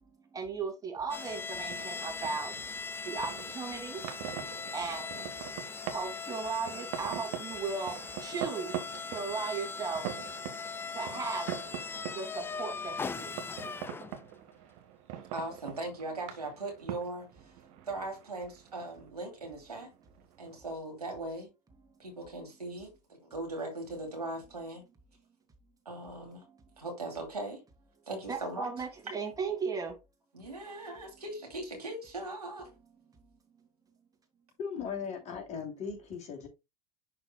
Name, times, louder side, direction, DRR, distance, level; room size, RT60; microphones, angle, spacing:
voice 1, 0.3-2.5 3.0-4.0 4.7-5.2 5.9-8.7 9.1-10.1 10.9-11.5 12.1-13.4 28.3-30.0, right 5 dB, 20° right, 2.6 m, -36 dB
sound 1, 1.1-14.3, left 5 dB, 10° left, 0.3 m, -40 dB
sound 2, 1.3-20.6, right 11 dB, 55° right, 1.3 m, -44 dB
voice 2, 15.3-17.5 17.9-19.9 20.4-21.5 22.0-24.8 25.8-26.4 26.8-27.6 28.1-28.9 30.3-32.7, right 2 dB, 80° right, 2.7 m, -39 dB
voice 3, 34.6-36.5, left 6 dB, 35° left, 2.8 m, -38 dB
11.0 x 4.3 x 2.2 m
figure-of-eight pair, 80°, 20 cm